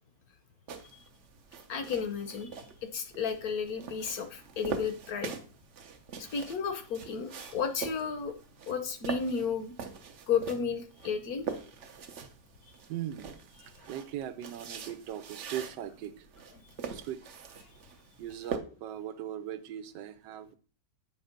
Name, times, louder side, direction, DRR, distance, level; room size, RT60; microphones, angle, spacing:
sound 1, 0.7-18.6, right 6 dB, 55° right, 0.8 m, -43 dB
voice 1, 1.7-2.6 2.8-5.3 6.2-8.3 8.7-9.7 10.3-11.4, left 6 dB, 65° left, 8 dB, 1.1 m, -33 dB
voice 2, 12.9-13.3 13.6-16.3 16.8-17.2 18.2-20.6, right 11 dB, 85° right, 12 dB, 1.3 m, -39 dB
7.8 x 3.3 x 5.1 m, 0.39 s
omnidirectional pair, 1.9 m